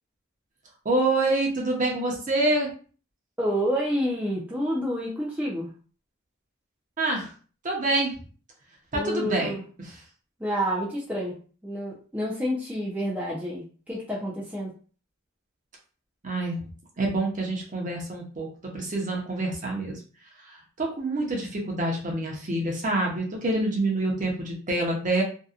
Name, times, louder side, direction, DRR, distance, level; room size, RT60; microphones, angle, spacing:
voice 1, 0.8-2.7 7.0-7.3 7.6-8.2 8.9-9.5 16.2-16.6 17.0-18.5 18.7-20.0 20.4-25.2, right 2 dB, 40° right, -1 dB, 0.7 m, -26 dB
voice 2, 3.4-5.7 8.9-9.6 10.4-11.4 11.6-14.7, equal, 5° right, -6 dB, 0.5 m, -29 dB
2.7 x 2.2 x 2.4 m, 0.39 s
head